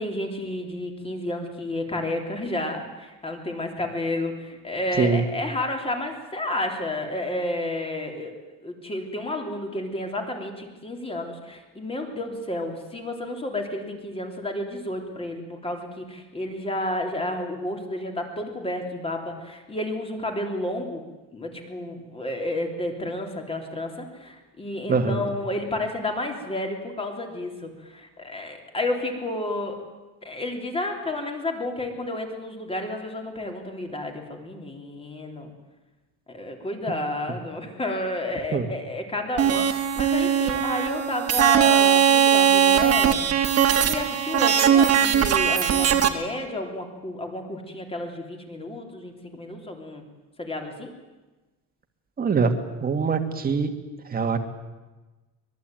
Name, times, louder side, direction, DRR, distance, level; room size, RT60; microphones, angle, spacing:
voice 1, 0.0-8.3 8.6-21.0 21.3-29.8 30.2-35.5 36.3-43.2 43.7-50.0 50.4-50.9, left 1 dB, 15° left, 3 dB, 3.6 m, -31 dB
voice 2, 24.9-25.2 38.5-38.7 52.2-52.5 52.8-53.7 54.1-54.4, right 5 dB, 25° right, 6 dB, 2.2 m, -23 dB
sound 1, 39.4-46.1, right 8 dB, 45° right, 2.1 m, -20 dB
24.5 x 21.5 x 9.2 m, 1.2 s
cardioid pair, 170°, 34 cm